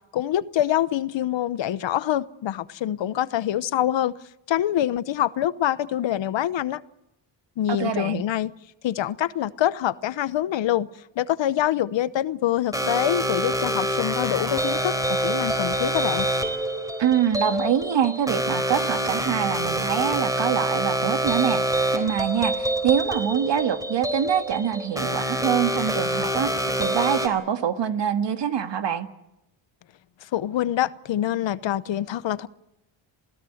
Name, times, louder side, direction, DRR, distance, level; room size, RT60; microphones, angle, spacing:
voice 1, 0.1-4.1 4.5-6.8 7.6-8.5 8.8-10.9 11.2-15.0 15.2-16.3 30.2-32.5, left 12 dB, 65° left, 1.0 m, -25 dB
voice 2, 7.7-8.2 17.0-21.6 21.9-29.1, right 9 dB, 65° right, 1.9 m, -25 dB
sound 1, 12.7-27.3, right 1 dB, 5° right, 4.1 m, -26 dB
28.0 x 17.0 x 7.9 m
cardioid pair, 95°, 47 cm